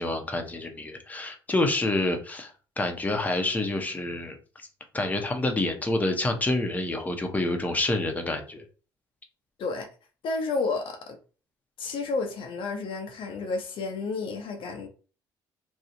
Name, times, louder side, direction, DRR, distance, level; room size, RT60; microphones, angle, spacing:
voice 1, 0.0-4.7 4.9-8.6, left 2 dB, 15° left, 0.6 m, -28 dB
voice 2, 10.2-11.2 11.8-14.9, left 3 dB, 60° left, 0.5 m, -31 dB
2.6 x 2.0 x 2.5 m
hypercardioid pair, 60°, 10 cm